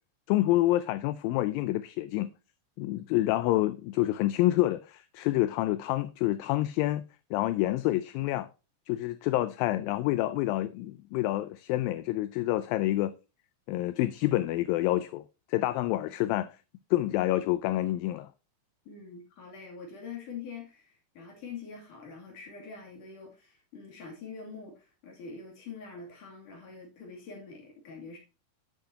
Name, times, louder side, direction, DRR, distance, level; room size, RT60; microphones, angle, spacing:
voice 1, 0.3-2.3 2.8-7.0 7.3-8.5 8.9-13.1 13.7-15.2 15.5-16.5 16.9-18.3, left 16 dB, 80° left, 2.1 m, -27 dB
voice 2, 18.9-28.2, left 5 dB, 55° left, 4.0 m, -44 dB
11.5 x 7.5 x 2.8 m
omnidirectional pair, 4.5 m